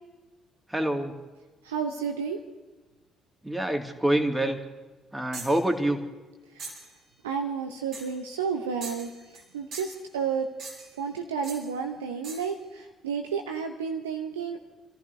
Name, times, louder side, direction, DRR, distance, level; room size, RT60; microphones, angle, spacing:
voice 1, 0.7-1.1 3.4-4.6 5.1-6.0, right 1 dB, 10° right, 4 dB, 2.2 m, -26 dB
voice 2, 1.6-2.4 6.5-6.8 7.2-10.5 11.0-14.6, right 6 dB, 80° right, 5 dB, 0.8 m, -31 dB
sound 1, 5.3-5.6 6.6-6.9 7.9-8.2 8.8-9.5 9.7-10.0 10.6-11.0 11.4-11.7 12.2-12.5, right 3 dB, 60° right, 5.1 m, -41 dB
29.5 x 14.5 x 2.7 m, 1.2 s
figure-of-eight pair, 45°, 0 cm